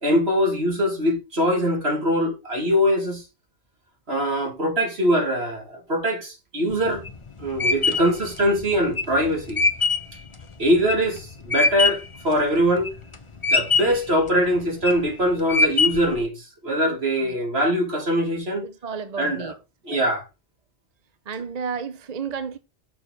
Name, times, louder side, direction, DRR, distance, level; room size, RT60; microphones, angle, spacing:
voice 1, 0.0-3.2 4.1-7.0 7.4-9.6 10.6-12.9 13.5-18.7 19.2-19.5 19.8-20.2, equal, 65° right, 3.1 m, -22 dB
sound 1, 6.7-12.2 12.6-13.1 13.4-14.1 14.6-15.1 15.5-16.2, left 3 dB, 30° left, 1.0 m, -22 dB
voice 2, 18.6-19.5 19.9-20.0 21.3-22.6, right 6 dB, 40° right, 0.7 m, -32 dB
6.8 x 6.7 x 5.2 m
omnidirectional pair, 1.2 m